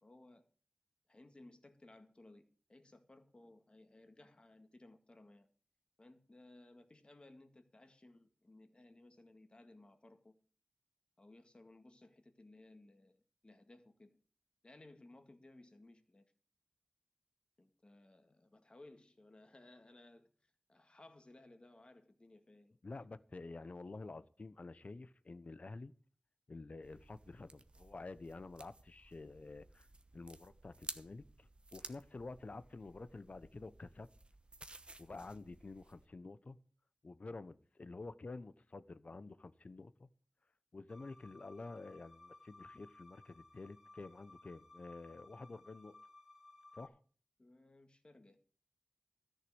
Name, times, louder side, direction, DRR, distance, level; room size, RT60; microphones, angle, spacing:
voice 1, 0.0-0.4 1.1-2.4 2.7-5.5 6.0-10.4 11.2-14.2 14.6-16.3 17.6-22.8 47.4-48.4, left 2 dB, 40° left, 1.9 m, -60 dB
voice 2, 22.8-25.9 26.5-29.9 30.1-34.1 35.0-36.6 37.0-40.1 40.7-45.9 46.7-47.0, left 3 dB, 65° left, 0.8 m, -49 dB
sound 1, 26.8-36.1, right 2 dB, 45° right, 1.1 m, -55 dB
sound 2, 40.9-46.9, left 2 dB, 15° right, 3.0 m, -59 dB
13.5 x 6.5 x 8.0 m
wide cardioid pair, 75°, 3 cm